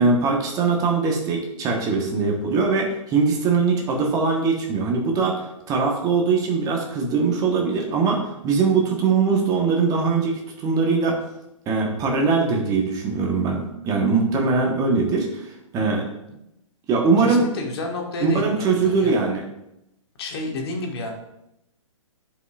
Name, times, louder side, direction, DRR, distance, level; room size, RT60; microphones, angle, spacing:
voice 1, 0.0-11.2 11.7-16.0 16.9-17.5 18.2-19.4, right 4 dB, 20° right, 1 dB, 1.1 m, -21 dB
voice 2, 17.2-19.2 20.2-21.1, left 2 dB, 50° left, 1 dB, 1.5 m, -31 dB
11.0 x 5.1 x 2.4 m, 0.85 s
figure-of-eight pair, 120°, 17 cm